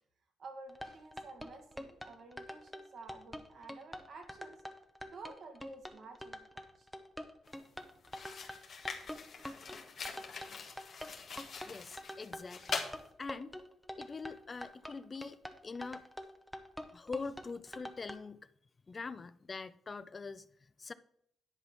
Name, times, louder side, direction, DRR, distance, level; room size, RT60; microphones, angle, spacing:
voice 1, 0.4-4.6 5.1-6.9, right 3 dB, 60° right, 2.0 m, -51 dB
sound 1, 0.7-18.2, equal, ahead, 1.0 m, -45 dB
sound 2, 7.4-7.6 8.0-13.0, left 5 dB, 55° left, 1.5 m, -43 dB
voice 2, 11.6-12.9 13.2-13.6 14.0-15.4 15.6-16.0 16.9-18.5 18.9-20.5 20.8-20.9, left 4 dB, 35° left, 0.4 m, -43 dB
10.5 x 4.1 x 7.2 m
cardioid pair, 80°, 0 cm